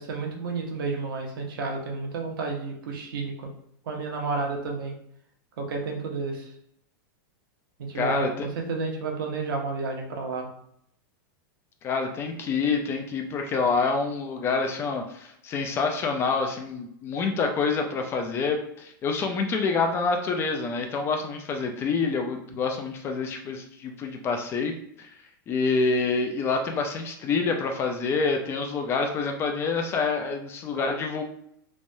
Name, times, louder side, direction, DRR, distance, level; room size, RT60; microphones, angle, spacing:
voice 1, 0.0-3.5 3.9-4.9 5.6-6.5 7.8-10.5, right 3 dB, 90° right, 1 dB, 0.8 m, -31 dB
voice 2, 7.9-8.5 11.8-25.1 25.5-31.2, left 4 dB, 20° left, 4 dB, 0.3 m, -27 dB
3.2 x 2.2 x 2.6 m, 0.72 s
supercardioid pair, 150°, 11 cm